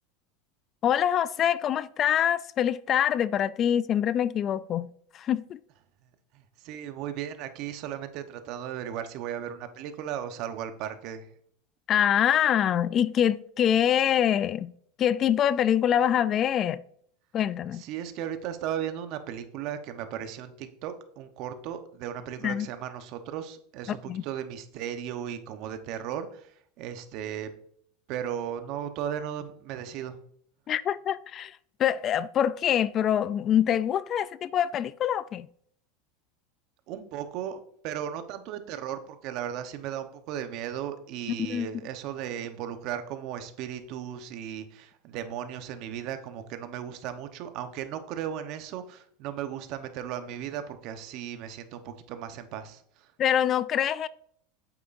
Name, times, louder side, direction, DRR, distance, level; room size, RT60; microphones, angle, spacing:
voice 1, 0.8-4.9 5.1-5.6 11.9-14.7 15.0-16.8 17.3-17.8 22.4-22.7 23.9-24.2 30.7-35.5 41.4-41.7 53.2-54.1, left 9 dB, 35° left, 0.3 m, -25 dB
voice 2, 6.3-11.3 17.7-27.5 28.1-30.2 36.9-53.1, right 9 dB, 55° right, 1.0 m, -36 dB
8.9 x 7.8 x 2.6 m
supercardioid pair, 125°, 0 cm